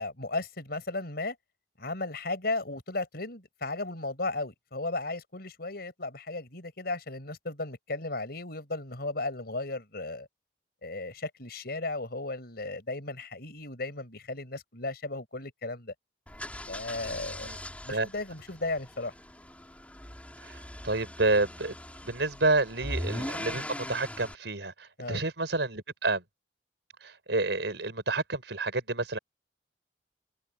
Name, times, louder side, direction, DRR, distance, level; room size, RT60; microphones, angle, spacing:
voice 1, 0.0-1.4 1.8-10.3 10.8-15.9 16.7-17.5 17.8-19.1 25.0-25.2, left 2 dB, 60° left, 5.6 m, -35 dB
sound 1, 16.3-24.3, left 1 dB, 10° left, 4.0 m, -40 dB
voice 2, 20.4-21.7 22.0-26.2 27.0-29.2, right 2 dB, 80° right, 4.5 m, -29 dB
open air
head